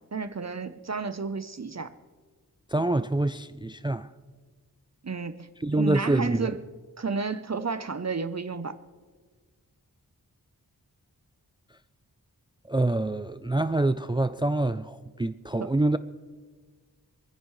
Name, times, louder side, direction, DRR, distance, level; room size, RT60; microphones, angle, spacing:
voice 1, 0.1-1.9 5.0-6.6 7.0-8.8 15.6-15.7, right 4 dB, 45° right, 0.7 m, -32 dB
voice 2, 2.7-4.1 5.6-6.5 12.7-16.0, right 2 dB, 15° right, 0.4 m, -26 dB
26.5 x 10.0 x 3.2 m
wide cardioid pair, 65°, 38 cm